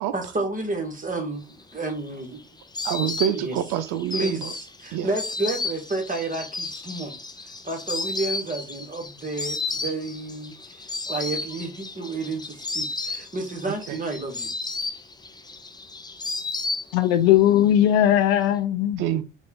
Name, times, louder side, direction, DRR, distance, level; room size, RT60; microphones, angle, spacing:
voice 1, 0.1-2.4 3.4-3.6 4.1-7.1 7.4-14.5, right 2 dB, 25° right, 1.6 m, -31 dB
Insect, 1.6-17.3 17.6-18.4, left 3 dB, 10° left, 0.5 m, -33 dB
voice 2, 2.8-4.5 4.9-5.1 13.9-14.0 19.0-19.2, right 10 dB, 65° right, 0.5 m, -26 dB
voice 3, 16.9-19.0, left 11 dB, 80° left, 0.5 m, -19 dB
4.0 x 2.5 x 3.6 m
hypercardioid pair, 50°, 33 cm